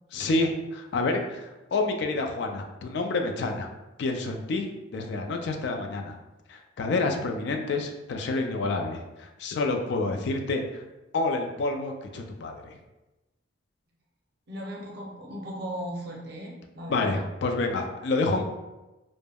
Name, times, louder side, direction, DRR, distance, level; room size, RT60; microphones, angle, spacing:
voice 1, 0.1-3.7 4.0-6.2 6.5-10.8 11.1-12.8 16.9-18.4, left 3 dB, 60° left, 4 dB, 0.3 m, -28 dB
voice 2, 14.5-17.2, equal, 55° right, -2 dB, 0.6 m, -37 dB
2.2 x 2.0 x 3.3 m, 1.0 s
head